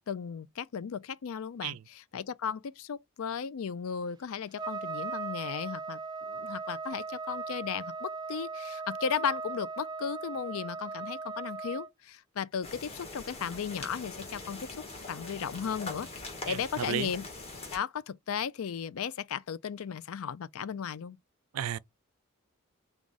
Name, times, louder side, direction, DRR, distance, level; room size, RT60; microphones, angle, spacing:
voice 1, 0.1-6.0 6.3-14.7 15.1-17.3 17.7-21.2, left 7 dB, 70° left, 0.4 m, -35 dB
Trumpet, 4.6-11.9, right 4 dB, 20° right, 0.5 m, -38 dB
sound 1, 12.6-17.8, left 2 dB, 25° left, 1.6 m, -43 dB
voice 2, 16.5-17.1 21.5-21.8, right 9 dB, 75° right, 0.4 m, -33 dB
4.8 x 2.3 x 3.9 m
head